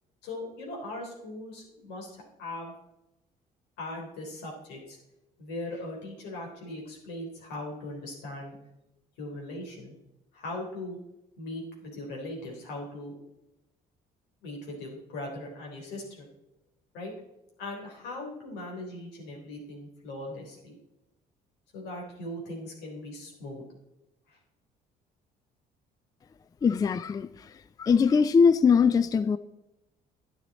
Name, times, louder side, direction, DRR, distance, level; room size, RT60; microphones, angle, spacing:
voice 1, 0.2-2.7 3.8-5.0 5.4-8.6 9.2-9.9 10.3-11.0 11.4-13.2 14.4-16.3 16.9-17.1 17.6-20.8 21.7-23.6 24.3-24.4, left 1 dB, 85° left, 3.5 m, -39 dB
voice 2, 26.6-27.5 27.8-29.4, left 6 dB, 20° left, 0.3 m, -22 dB
10.5 x 10.0 x 4.1 m
cardioid pair, 110°, 17 cm